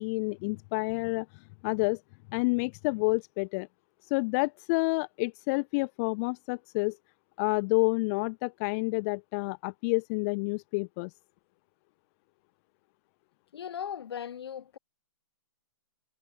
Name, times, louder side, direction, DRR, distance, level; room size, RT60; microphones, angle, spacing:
voice 1, 0.0-2.0 2.3-3.7 4.0-7.0 7.4-11.1, left 29 dB, 35° left, 1.1 m, -29 dB
voice 2, 13.5-14.8, left 9 dB, 60° left, 7.7 m, -38 dB
hypercardioid pair, 130°, 15 cm